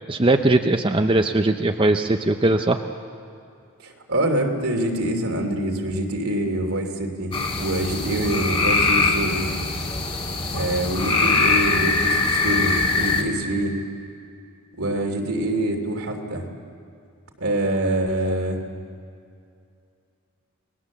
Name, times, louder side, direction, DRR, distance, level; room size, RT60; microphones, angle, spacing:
voice 1, 0.1-2.8, right 2 dB, 25° right, 6 dB, 0.6 m, -20 dB
voice 2, 3.8-9.5 10.5-13.8 14.7-16.5 17.4-18.6, right 1 dB, 75° right, 2 dB, 3.0 m, -25 dB
sound 1, 7.3-13.2, left 3 dB, 25° left, 1.9 m, -22 dB
30.0 x 20.0 x 7.3 m, 2.5 s
head